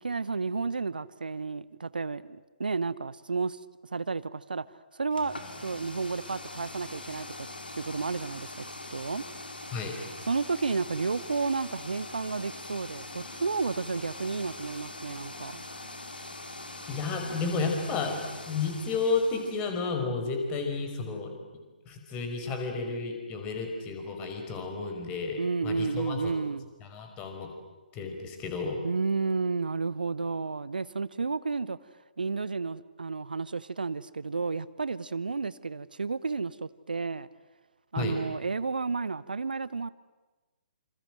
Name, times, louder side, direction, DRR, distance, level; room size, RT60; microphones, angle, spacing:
voice 1, 0.0-3.6 3.9-4.6 4.9-7.3 7.8-8.6 8.9-9.2 10.3-15.6 25.4-26.7 28.8-31.8 32.2-37.3 37.9-39.9, right 4 dB, 65° right, 0.9 m, -32 dB
sound 1, 5.1-19.8, left 2 dB, 75° left, 4.3 m, -43 dB
voice 2, 16.9-18.2 18.5-21.3 21.9-26.3 26.8-27.5 27.9-28.8 38.0-38.2, left 4 dB, 20° left, 5.3 m, -32 dB
27.5 x 27.5 x 7.8 m
figure-of-eight pair, 130°, 5 cm